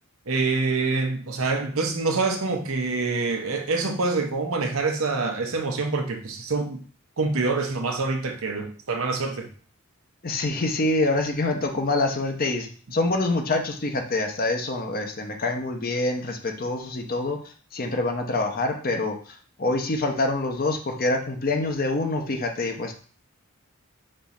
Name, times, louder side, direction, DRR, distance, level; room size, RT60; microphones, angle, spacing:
voice 1, 0.3-6.8 7.2-9.5, right 3 dB, 75° right, 5 dB, 0.8 m, -26 dB
voice 2, 10.2-17.4 17.7-19.2 19.6-22.9, left 2 dB, 40° left, 4 dB, 0.7 m, -26 dB
5.3 x 2.4 x 4.1 m, 0.42 s
head